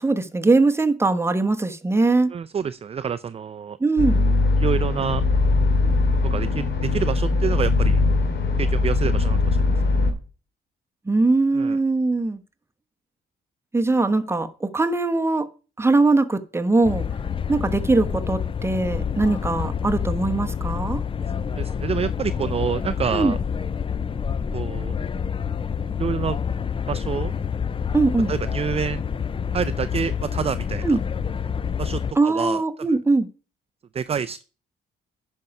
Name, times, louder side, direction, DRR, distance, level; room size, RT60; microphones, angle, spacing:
voice 1, 0.0-2.3 3.8-4.2 11.1-12.4 13.7-15.5 15.8-17.0 17.5-21.0 23.1-23.4 27.9-28.3 30.8-31.0 32.2-33.3, right 3 dB, 10° right, 1.0 m, -21 dB
voice 2, 2.3-3.8 4.6-5.2 6.3-8.0 8.6-9.7 11.5-11.8 21.4-23.4 24.5-24.9 26.0-26.4 26.9-27.3 28.3-29.0 29.5-30.8 31.8-32.6 33.9-34.4, right 7 dB, 30° right, 0.5 m, -27 dB
sound 1, 4.0-10.1, left 3 dB, 60° left, 2.4 m, -20 dB
sound 2, 16.8-32.1, left 7 dB, 25° left, 0.4 m, -27 dB
10.0 x 5.4 x 5.9 m
cardioid pair, 90°, 20 cm